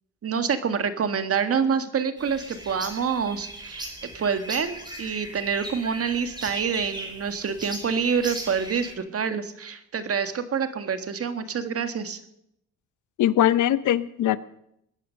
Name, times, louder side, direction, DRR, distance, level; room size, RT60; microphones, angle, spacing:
voice 1, 0.2-12.2, right 6 dB, 50° right, 9 dB, 1.8 m, -27 dB
sound 1, 2.2-8.9, right 1 dB, 15° right, 4.6 m, -38 dB
voice 2, 13.2-14.4, left 12 dB, 75° left, 16 dB, 0.9 m, -21 dB
21.0 x 9.9 x 6.5 m, 0.77 s
cardioid pair, 90°, 30 cm